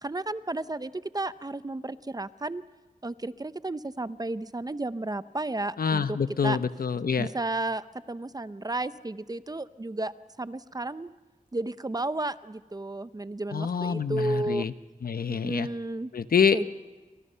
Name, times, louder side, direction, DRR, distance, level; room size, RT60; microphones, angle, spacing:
voice 1, 0.0-2.6 3.0-6.2 6.4-6.6 7.2-10.1 10.4-11.1 11.5-14.7 15.3-16.1 16.5-16.6, right 2 dB, 25° right, 14 dB, 0.7 m, -33 dB
voice 2, 5.8-7.3 13.5-14.7 15.0-15.7 16.1-16.6, left 6 dB, 85° left, 11 dB, 0.9 m, -26 dB
29.5 x 27.0 x 5.6 m, 1.2 s
wide cardioid pair, 85°, 15 cm